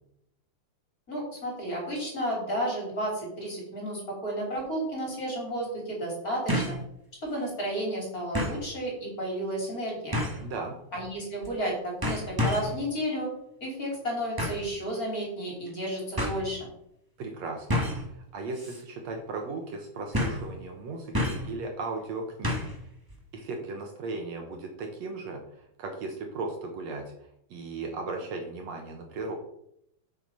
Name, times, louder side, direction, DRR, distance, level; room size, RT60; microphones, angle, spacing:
voice 1, 1.1-6.8 7.2-10.2 10.9-13.3 13.6-16.7, right 1 dB, 30° left, -1 dB, 3.4 m, -32 dB
sound 1, 4.6-4.7 6.5-6.8 7.3-7.4 8.3-8.6 10.1-10.5 11.4-11.7 12.0-12.8 14.4-14.7 15.7-15.8 16.2-16.4 17.7-18.1 18.5-18.8 19.1-19.2 20.1-20.5 21.1-21.5 22.4-22.8 23.1-23.2, left 1 dB, 20° right, 0.5 m, -29 dB
voice 2, 10.4-10.7 17.2-17.8 18.1-22.6 23.3-25.4 25.8-27.1 27.5-29.4, right 3 dB, 65° right, 3 dB, 2.2 m, -36 dB
8.9 x 6.2 x 5.6 m, 0.75 s
omnidirectional pair, 3.6 m